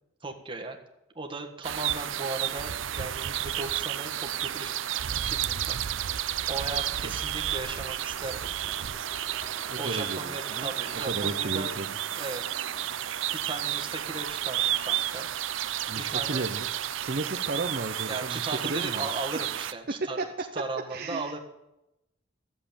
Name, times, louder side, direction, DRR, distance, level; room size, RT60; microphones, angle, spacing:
voice 1, 0.2-0.8 1.1-4.7 5.2-5.8 6.5-8.5 9.8-11.7 12.2-12.7 13.3-15.3 15.9-16.5 18.1-20.3 20.5-21.4, right 3 dB, 25° right, 3 dB, 1.6 m, -37 dB
sound 1, 1.6-19.7, right 11 dB, 85° right, 0.5 m, -31 dB
sound 2, 5.9-16.0, equal, 30° left, 1.9 m, -53 dB
voice 2, 9.7-11.9 15.9-19.1 19.3-19.4 20.9-21.4, right 2 dB, 50° right, 5 dB, 0.8 m, -35 dB
14.0 x 7.6 x 8.8 m, 0.90 s
head